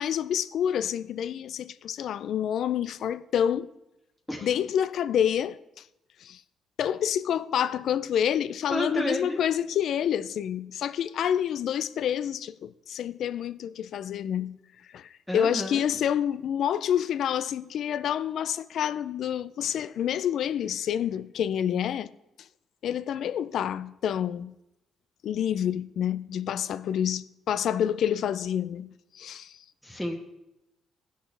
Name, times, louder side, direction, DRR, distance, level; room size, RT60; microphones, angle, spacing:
voice 1, 0.0-3.7 4.4-5.8 6.2-6.4 6.8-14.6 14.9-22.1 22.8-24.5 25.2-29.6, left 9 dB, 70° left, 0.4 m, -28 dB
voice 2, 8.7-9.4 15.3-15.8 29.8-30.1, left 1 dB, 5° left, 1.2 m, -30 dB
16.0 x 6.5 x 3.3 m
cardioid pair, 90°, 0 cm